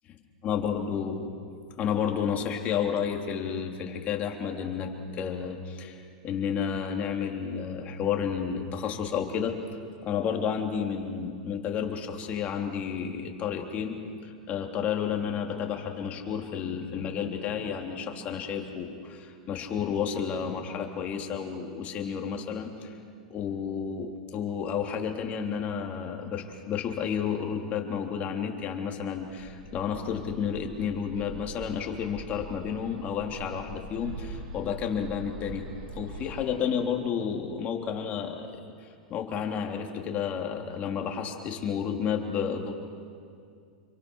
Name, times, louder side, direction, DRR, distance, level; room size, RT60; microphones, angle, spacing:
voice 1, 0.4-1.3 1.8-9.6 10.0-14.0 14.2-22.9 23.3-35.7 35.9-38.6 39.1-42.7, left 7 dB, 35° left, 2 dB, 3.4 m, -31 dB
Bird, 29.2-36.4, right 3 dB, 60° right, 3.7 m, -43 dB
27.5 x 25.0 x 6.4 m, 2.3 s
hypercardioid pair, 110°, 4 cm